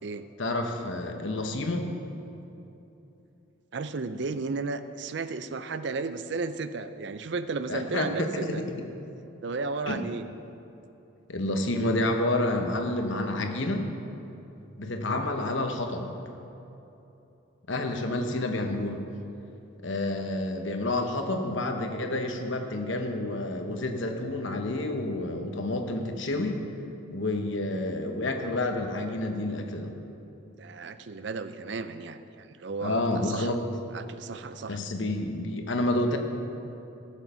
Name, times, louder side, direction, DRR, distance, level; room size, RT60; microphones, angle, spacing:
voice 1, 0.4-1.9 7.7-8.6 9.9-10.0 11.3-13.8 14.8-16.1 17.7-19.0 19.8-26.6 27.1-29.9 32.8-33.6 34.7-36.2, left 2 dB, 70° left, 4 dB, 1.1 m, -29 dB
voice 2, 3.7-8.6 9.4-10.3 27.4-27.5 30.6-33.5 33.9-34.8, right 4 dB, 60° right, 11 dB, 0.5 m, -34 dB
14.5 x 7.4 x 5.6 m, 2.9 s
head